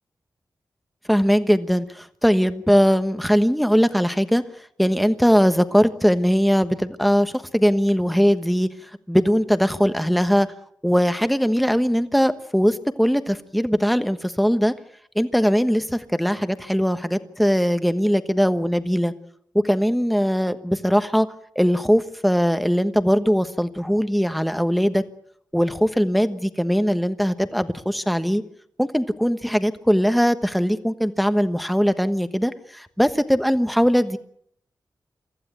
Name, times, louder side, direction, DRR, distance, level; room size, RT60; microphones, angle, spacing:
voice 1, 1.1-4.4 4.8-8.7 9.1-10.5 10.8-14.7 15.1-19.1 19.6-21.3 21.5-25.0 25.5-28.4 28.8-34.2, equal, ahead, 10 dB, 1.2 m, -20 dB
24.0 x 15.0 x 9.1 m, 0.69 s
wide cardioid pair, 145°, 7 cm